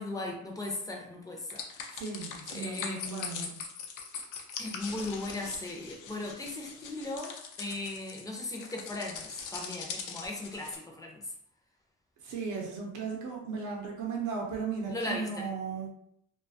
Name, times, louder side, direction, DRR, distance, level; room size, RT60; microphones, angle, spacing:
voice 1, 0.0-1.6 2.5-3.5 4.6-11.2 14.9-15.5, left 2 dB, 10° left, 0 dB, 0.4 m, -38 dB
sound 1, 1.5-10.8, left 6 dB, 85° left, 0.5 m, -42 dB
voice 2, 2.0-3.6 12.2-15.9, right 5 dB, 75° right, -1 dB, 0.6 m, -36 dB
2.3 x 2.2 x 2.6 m, 0.71 s
cardioid pair, 150°, 30 cm